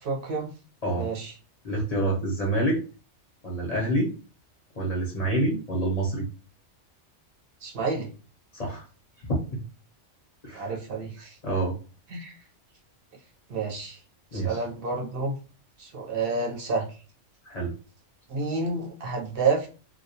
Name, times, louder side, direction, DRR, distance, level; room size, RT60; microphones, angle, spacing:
voice 1, 0.0-0.5 0.9-1.3 7.6-8.1 10.5-11.4 12.1-12.4 13.5-14.0 14.3-15.4 15.8-16.9 18.3-19.7, right 4 dB, 55° right, -1 dB, 0.8 m, -29 dB
voice 2, 1.6-2.8 3.4-4.1 4.8-6.2 8.5-8.8 9.2-9.6 10.4-10.7 11.4-11.7 14.3-14.6 17.5-17.7, right 1 dB, 40° left, -3 dB, 0.7 m, -27 dB
2.3 x 2.2 x 2.7 m, 0.35 s
omnidirectional pair, 1.2 m